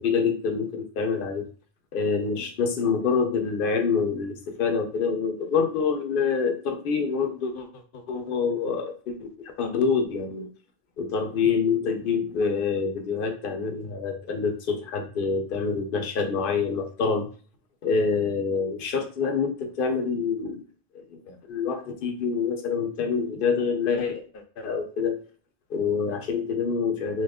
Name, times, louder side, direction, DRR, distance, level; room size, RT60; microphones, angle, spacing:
voice 1, 0.0-1.5 1.9-7.7 7.9-10.5 11.0-17.3 17.8-20.6 20.9-25.2 25.7-27.2, left 5 dB, 65° left, 6 dB, 0.7 m, -26 dB
2.8 x 2.3 x 3.4 m, 0.41 s
omnidirectional pair, 1.0 m